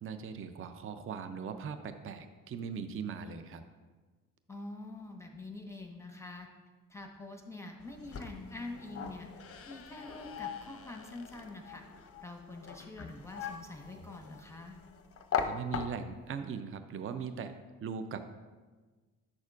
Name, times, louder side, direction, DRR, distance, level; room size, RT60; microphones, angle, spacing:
voice 1, 0.0-3.6 15.4-18.2, right 6 dB, 30° right, 10 dB, 0.5 m, -40 dB
voice 2, 4.5-6.5 6.9-9.3 9.7-11.8 12.2-14.8, left 2 dB, 5° left, 2 dB, 1.1 m, -45 dB
sound 1, 7.8-16.3, left 7 dB, 30° left, 0.7 m, -41 dB
9.6 x 6.3 x 2.4 m, 1.3 s
hypercardioid pair, 45°, 43 cm